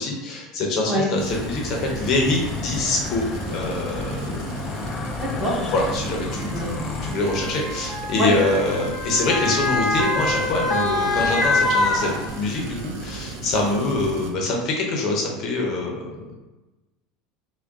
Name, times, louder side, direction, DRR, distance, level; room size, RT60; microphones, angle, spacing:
voice 1, 0.0-3.2 3.5-4.7 5.7-16.3, left 2 dB, 45° left, 0 dB, 0.7 m, -25 dB
sound 1, 1.2-14.3, right 3 dB, 75° right, 0.6 m, -35 dB
sound 2, 1.3-7.1, left 3 dB, 30° left, 0.3 m, -32 dB
Motor vehicle (road) / Siren, 2.8-2.9 3.8-4.0 5.1-12.7 13.2-13.3, left 2 dB, 10° left, 0.9 m, -25 dB
voice 2, 5.2-5.7 6.5-6.7 8.2-8.3, equal, 5° right, -7 dB, 1.4 m, -24 dB
3.5 x 2.2 x 3.5 m, 1.1 s
supercardioid pair, 130°, 0 cm